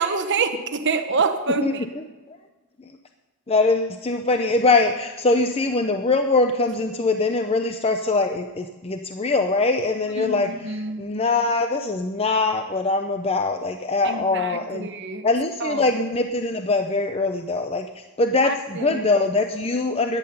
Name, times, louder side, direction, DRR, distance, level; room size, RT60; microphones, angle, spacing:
voice 1, 0.0-1.8 10.2-11.0 14.0-15.3 15.6-15.9 18.4-19.0, right 4 dB, 55° right, 8 dB, 1.0 m, -26 dB
voice 2, 1.6-2.4 3.5-10.5 11.0-14.9 15.2-20.2, left 3 dB, 25° left, 6 dB, 0.6 m, -22 dB
14.5 x 11.0 x 5.5 m, 1.2 s
head